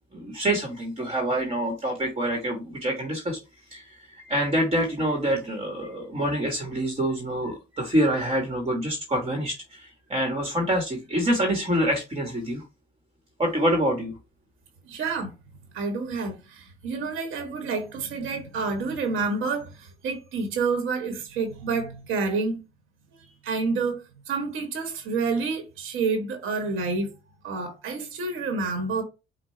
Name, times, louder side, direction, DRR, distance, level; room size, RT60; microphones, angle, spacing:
voice 1, 0.1-3.4 3.7-3.9 4.2-12.6 13.4-14.1, right 1 dB, 30° right, 1.4 m, -26 dB
voice 2, 14.8-15.3 15.7-22.6 23.4-24.0 24.3-27.1 27.4-29.0, right 4 dB, 85° right, 1.5 m, -28 dB
5.2 x 2.4 x 4.3 m
cardioid pair, 90°, 20 cm